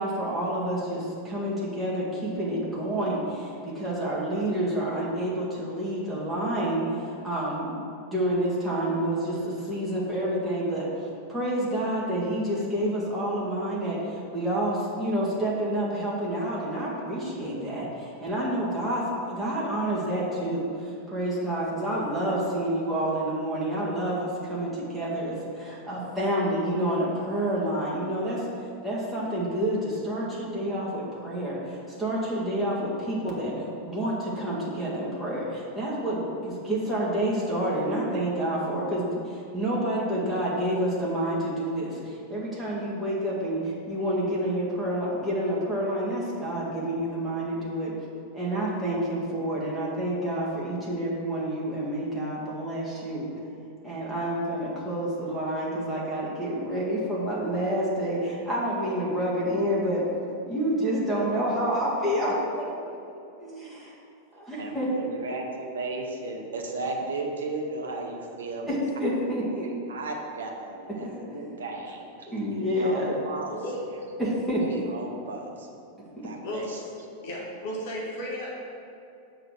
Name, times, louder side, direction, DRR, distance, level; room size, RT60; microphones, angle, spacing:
voice 1, 0.0-7.8 8.1-28.5 28.8-47.9 48.3-53.3 53.8-60.1 60.4-63.0 63.4-63.9 64.3-65.1 68.7-69.7 71.0-71.4 72.3-73.1 74.2-74.8 76.2-76.3, right 1 dB, 5° right, -8 dB, 1.8 m, -28 dB
voice 2, 64.6-68.8 69.9-73.6 74.6-75.7 76.2-76.8, right 3 dB, 65° right, 1 dB, 0.9 m, -35 dB
voice 3, 73.5-73.8 76.4-76.9 77.2-78.5, equal, 50° left, -4 dB, 1.5 m, -34 dB
6.8 x 3.9 x 6.3 m, 2.5 s
figure-of-eight pair, 90°, 0 cm